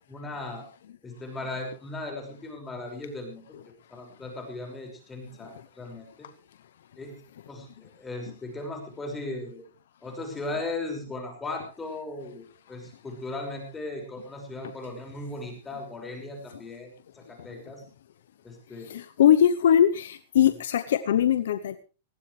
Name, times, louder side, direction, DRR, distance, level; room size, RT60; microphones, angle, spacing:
voice 1, 0.1-0.7 1.0-3.4 3.9-6.3 7.0-9.6 10.0-12.4 12.7-17.8 18.4-18.9, left 2 dB, 15° left, 3 dB, 5.6 m, -37 dB
voice 2, 18.8-21.8, left 10 dB, 75° left, 12 dB, 0.9 m, -21 dB
19.5 x 16.0 x 3.3 m, 0.34 s
hypercardioid pair, 125°, 0 cm